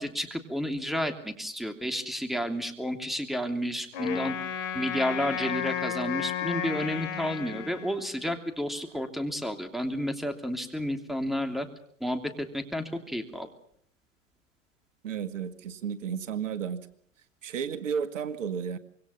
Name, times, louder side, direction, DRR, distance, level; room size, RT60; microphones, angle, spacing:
voice 1, 0.0-4.3 4.7-11.7 12.0-13.5, equal, ahead, 6 dB, 2.9 m, -31 dB
Wind instrument woodwind instrument, 3.9-8.3, left 8 dB, 55° left, 3.5 m, -33 dB
voice 2, 15.0-16.9 17.4-18.8, right 7 dB, 70° right, 11 dB, 1.9 m, -32 dB
26.0 x 22.5 x 5.7 m, 0.66 s
hypercardioid pair, 100°, 38 cm